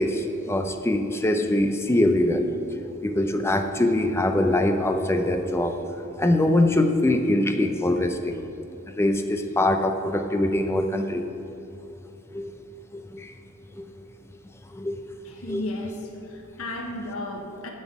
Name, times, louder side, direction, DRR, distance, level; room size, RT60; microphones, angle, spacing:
voice 1, 0.0-2.4 3.0-5.8 6.2-8.4 8.9-11.2 12.3-12.5 13.1-13.3 13.8-13.9 14.7-15.0 15.5-15.6, left 1 dB, 10° left, 6 dB, 0.5 m, -23 dB
voice 2, 15.2-17.7, left 1 dB, 90° left, 2 dB, 1.0 m, -34 dB
7.5 x 7.0 x 7.1 m, 2.9 s
head